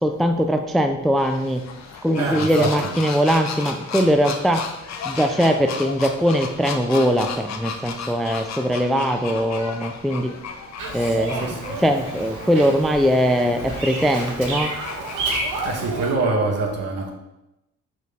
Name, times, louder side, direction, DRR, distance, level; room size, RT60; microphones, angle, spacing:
voice 1, 0.0-1.6 2.0-4.7 5.0-10.4 10.9-14.7, equal, ahead, 0.3 m, -21 dB
sound 1, 1.2-15.5, left 5 dB, 60° left, 0.7 m, -35 dB
voice 2, 2.2-2.9 11.4-11.8 13.6-13.8 15.6-17.1, right 3 dB, 55° right, 1.4 m, -25 dB
Bird vocalization bird call bird song, 10.8-16.1, right 2 dB, 85° right, 1.2 m, -30 dB
6.2 x 4.3 x 3.5 m
cardioid pair, 90°, 30 cm